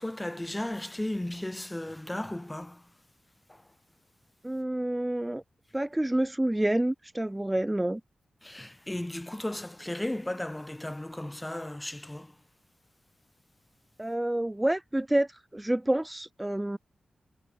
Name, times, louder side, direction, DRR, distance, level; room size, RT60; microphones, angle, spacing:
voice 1, 0.0-2.9 3.5-3.6 8.4-12.3, left 1 dB, 15° left, 3.0 m, -35 dB
voice 2, 4.4-5.4 5.7-8.0 14.0-16.8, right 1 dB, 15° right, 1.6 m, -28 dB
supercardioid pair, 40°, 0 cm